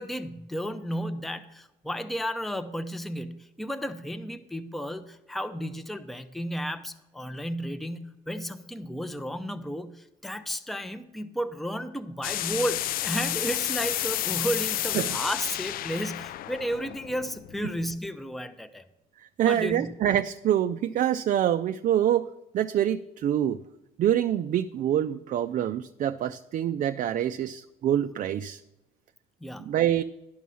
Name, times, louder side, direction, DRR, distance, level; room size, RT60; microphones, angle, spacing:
voice 1, 0.0-18.9 19.5-19.9 29.4-29.7, equal, ahead, 10 dB, 0.6 m, -33 dB
sound 1, 12.2-17.9, left 13 dB, 60° left, 0.4 m, -31 dB
voice 2, 19.2-23.6 24.0-28.6 29.6-30.0, right 11 dB, 50° right, 9 dB, 0.4 m, -26 dB
11.0 x 5.5 x 6.2 m, 0.98 s
cardioid pair, 110°, 17 cm